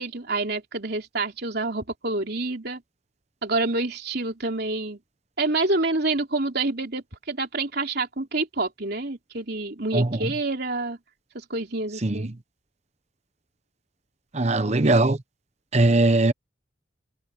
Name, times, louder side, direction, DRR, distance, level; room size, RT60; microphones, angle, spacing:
voice 1, 0.0-2.8 3.4-5.0 5.4-11.0 11.3-12.3, right 2 dB, 55° right, 3.6 m, -27 dB
voice 2, 9.9-10.3 12.0-12.3 14.3-15.2 15.7-16.3, right 2 dB, 35° right, 0.9 m, -20 dB
head